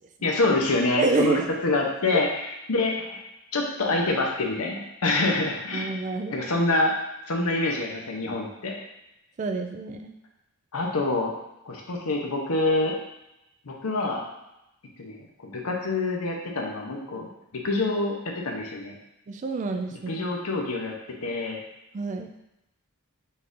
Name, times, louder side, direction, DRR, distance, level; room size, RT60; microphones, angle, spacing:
voice 1, 0.2-3.2 3.5-5.9 6.3-6.9 7.3-8.7 10.7-11.3 11.6-12.9 13.6-14.2 15.0-17.3 17.6-19.0 20.1-20.9 21.2-21.6, left 2 dB, 80° left, 0 dB, 0.8 m, -26 dB
voice 2, 1.0-1.4 2.1-2.2 5.7-6.5 9.4-10.1 19.3-20.2 21.9-22.3, right 3 dB, 35° right, 5 dB, 0.3 m, -28 dB
4.1 x 2.6 x 3.6 m, 0.89 s
head